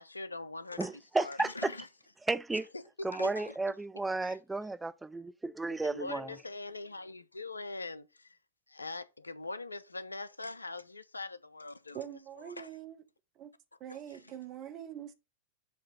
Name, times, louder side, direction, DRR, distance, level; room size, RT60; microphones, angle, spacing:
voice 1, 0.0-1.9 2.5-3.6 4.2-4.4 5.8-8.4 8.7-12.7, left 3 dB, 80° left, 0.5 m, -42 dB
voice 2, 0.8-1.7 2.3-2.7 3.0-6.3, right 3 dB, 10° right, 0.4 m, -33 dB
voice 3, 11.9-13.0 13.4-13.5 13.8-15.1, right 10 dB, 35° right, 0.9 m, -44 dB
7.4 x 2.9 x 5.3 m
figure-of-eight pair, 90°, 0 cm